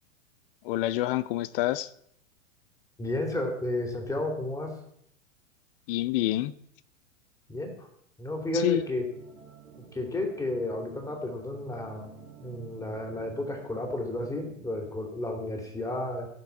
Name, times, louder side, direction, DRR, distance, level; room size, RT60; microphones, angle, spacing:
voice 1, 0.6-1.9 5.9-6.5 8.5-8.8, left 14 dB, 45° left, 18 dB, 0.7 m, -27 dB
voice 2, 3.0-4.7 7.5-7.9 8.2-9.0 9.9-12.1 12.4-16.3, left 1 dB, 10° left, 2 dB, 2.9 m, -32 dB
sound 1, 9.1-14.9, right 7 dB, 75° right, 2.0 m, -51 dB
17.0 x 5.9 x 4.5 m, 0.69 s
figure-of-eight pair, 95°, 39 cm